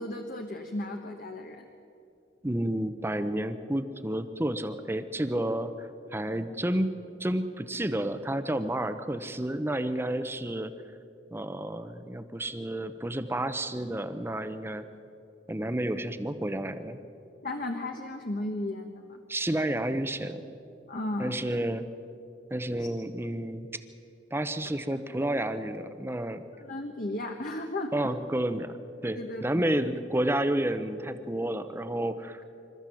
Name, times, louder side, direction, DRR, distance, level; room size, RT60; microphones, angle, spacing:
voice 1, 0.0-1.7 17.4-19.2 20.9-21.4 22.8-22.9 26.6-28.1 29.1-29.8, left 1 dB, 50° left, 4 dB, 1.2 m, -35 dB
voice 2, 2.4-6.9 7.2-10.7 11.3-14.8 15.5-17.0 19.3-20.4 21.2-21.9 22.5-23.7 24.3-26.4 27.9-28.8 29.0-32.4, right 1 dB, 15° right, 10 dB, 0.8 m, -30 dB
26.5 x 13.5 x 7.7 m, 2.6 s
head